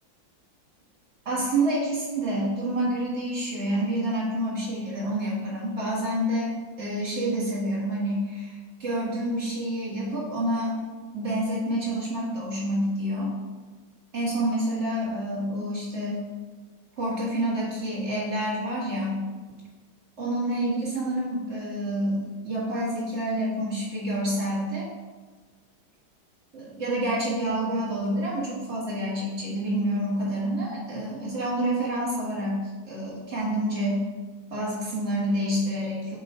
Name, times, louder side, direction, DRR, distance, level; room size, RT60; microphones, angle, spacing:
voice 1, 1.3-10.8 11.1-13.3 14.1-16.2 17.0-19.2 20.2-24.9 26.5-32.6 32.9-34.0 34.5-36.2, right 1 dB, 35° right, -7 dB, 2.0 m, -28 dB
8.1 x 3.0 x 4.3 m, 1.3 s
omnidirectional pair, 2.2 m